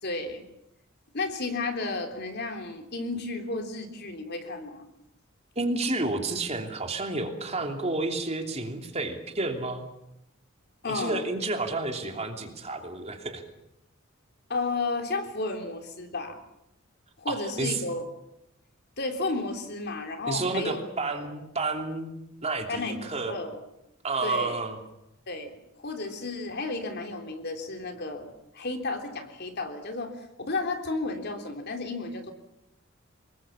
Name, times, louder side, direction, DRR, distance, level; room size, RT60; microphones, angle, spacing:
voice 1, 0.0-0.4 1.1-4.9 10.8-11.2 14.5-16.4 17.2-18.1 19.0-21.3 22.7-23.6 24.2-24.6 25.3-25.5 25.8-32.3, left 3 dB, 55° left, 5 dB, 3.5 m, -33 dB
voice 2, 5.6-9.8 10.9-13.4 17.3-17.8 20.3-23.3 24.0-24.8, right 2 dB, 30° right, 4 dB, 3.0 m, -30 dB
25.0 x 21.5 x 7.2 m, 0.85 s
head